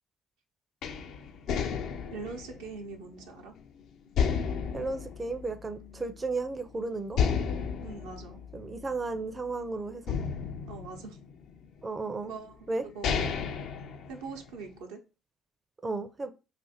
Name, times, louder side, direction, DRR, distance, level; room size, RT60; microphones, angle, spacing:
sound 1, 0.8-3.6 4.2-6.1 6.4-6.5 7.1-9.5 10.1-11.7 12.4-12.5 12.8-14.7, left 6 dB, 70° left, 0.4 m, -32 dB
voice 1, 2.1-3.5 7.8-8.4 10.7-11.2 12.2-12.7 12.9-13.6 14.1-15.0, right 4 dB, 85° right, 0.7 m, -42 dB
voice 2, 4.7-7.2 8.5-10.2 11.8-12.3 12.7-12.8 15.8-16.3, right 3 dB, 30° right, 0.4 m, -34 dB
2.5 x 2.5 x 4.1 m
hypercardioid pair, 60°, 0 cm